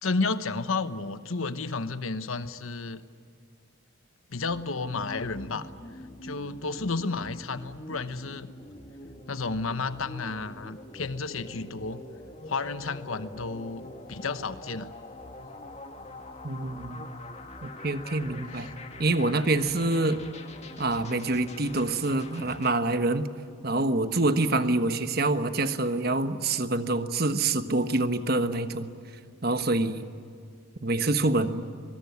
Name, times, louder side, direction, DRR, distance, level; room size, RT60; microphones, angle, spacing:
voice 1, 0.0-3.0 4.3-5.7 6.2-8.5 9.3-12.0 12.5-13.8 14.1-14.9 18.6-18.7, left 3 dB, 80° left, 12 dB, 1.1 m, -32 dB
sound 1, 4.5-22.8, left 1 dB, 30° left, 2.0 m, -44 dB
voice 2, 16.4-17.1 17.6-18.7 19.0-20.2 20.8-23.3 23.6-28.9 29.4-30.0 30.8-31.7, right 2 dB, 45° right, 9 dB, 1.3 m, -26 dB
23.5 x 21.5 x 9.6 m, 2.4 s
head